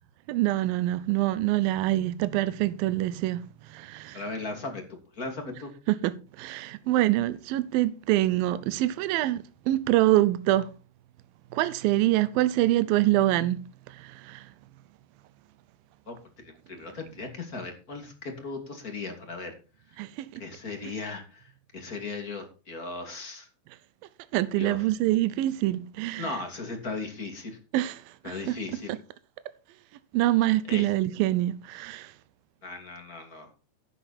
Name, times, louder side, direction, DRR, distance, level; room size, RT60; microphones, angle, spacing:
voice 1, 0.3-3.4 3.7-4.2 5.9-10.7 11.5-13.6 13.9-14.5 20.0-20.4 24.3-26.3 27.7-28.6 30.1-32.1, right 15 dB, 85° right, 2.5 m, -25 dB
voice 2, 4.1-4.8 5.1-5.7 16.1-19.5 20.4-23.5 24.5-24.8 26.2-27.6 28.2-28.9 30.7-30.9 32.6-33.5, left 3 dB, 25° left, 2.6 m, -37 dB
11.5 x 10.0 x 4.3 m
omnidirectional pair, 4.1 m